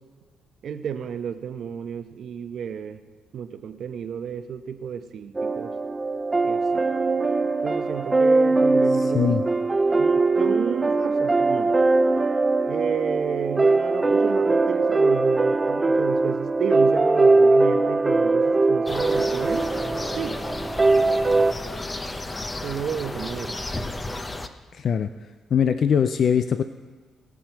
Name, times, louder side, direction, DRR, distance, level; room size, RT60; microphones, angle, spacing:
voice 1, 0.6-3.0 3.3-5.7 6.4-6.8 7.6-9.3 10.0-11.7 12.7-19.7 20.2-20.4 22.6-23.6, right 8 dB, 65° right, 9 dB, 0.9 m, -31 dB
sound 1, 5.3-21.5, right 3 dB, 20° right, 0.6 m, -21 dB
voice 2, 9.0-9.4 24.7-25.1 25.5-26.6, left 7 dB, 55° left, 10 dB, 0.5 m, -21 dB
sound 2, 18.9-24.5, left 2 dB, 20° left, 0.8 m, -33 dB
21.5 x 7.6 x 4.6 m, 1.4 s
cardioid pair, 90°, 0 cm